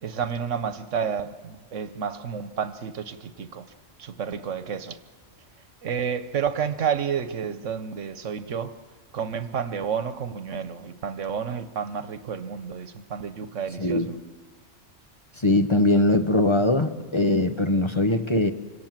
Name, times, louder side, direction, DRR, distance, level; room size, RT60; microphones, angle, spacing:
voice 1, 0.0-3.6 4.0-5.0 5.8-8.7 9.1-14.2, right 7 dB, 85° right, 12 dB, 1.3 m, -30 dB
voice 2, 13.8-14.1 15.4-18.5, left 2 dB, 25° left, 7 dB, 0.9 m, -21 dB
27.5 x 25.5 x 7.5 m, 1.5 s
omnidirectional pair, 1.2 m